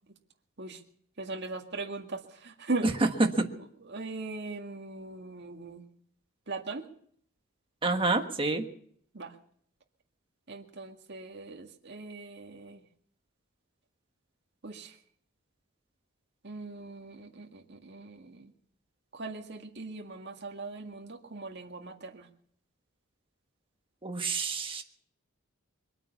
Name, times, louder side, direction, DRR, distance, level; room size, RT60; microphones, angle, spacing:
voice 1, 1.2-2.9 3.9-5.8 6.5-6.8 9.1-9.3 10.5-12.8 14.6-15.0 16.4-18.5 19.1-22.3, right 3 dB, 55° right, 2 dB, 2.0 m, -39 dB
voice 2, 7.8-8.6 24.0-24.8, right 2 dB, 25° right, 5 dB, 1.5 m, -27 dB
23.0 x 9.0 x 7.0 m, 0.64 s
head